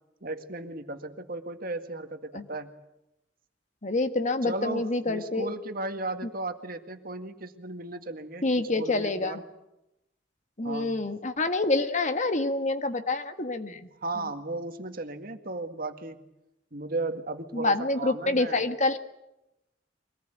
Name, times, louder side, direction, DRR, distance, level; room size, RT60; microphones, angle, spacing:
voice 1, 0.2-2.7 4.4-9.4 10.6-10.9 14.0-16.2 16.7-18.6, right 2 dB, 50° right, 7 dB, 2.0 m, -35 dB
voice 2, 3.8-5.5 8.4-9.4 10.6-13.9 14.2-14.3 17.5-19.0, left 2 dB, 40° left, 9 dB, 1.6 m, -27 dB
24.5 x 19.0 x 9.2 m, 0.90 s
head